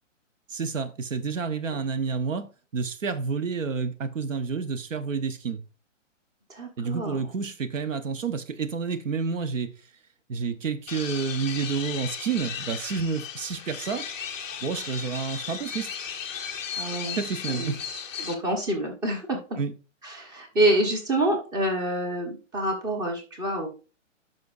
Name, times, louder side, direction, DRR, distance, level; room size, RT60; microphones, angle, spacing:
voice 1, 0.5-5.6 6.8-9.7 10.3-14.1 14.6-15.9 17.1-17.8 19.6-19.7, right 5 dB, 75° right, 1.0 m, -29 dB
voice 2, 6.5-7.2 16.7-17.2 17.5-17.7 18.2-19.6 20.0-23.7, right 1 dB, 10° right, 1.0 m, -27 dB
sound 1, 10.9-18.3, left 7 dB, 10° left, 0.5 m, -36 dB
10.5 x 5.5 x 2.5 m
hypercardioid pair, 145°, 38 cm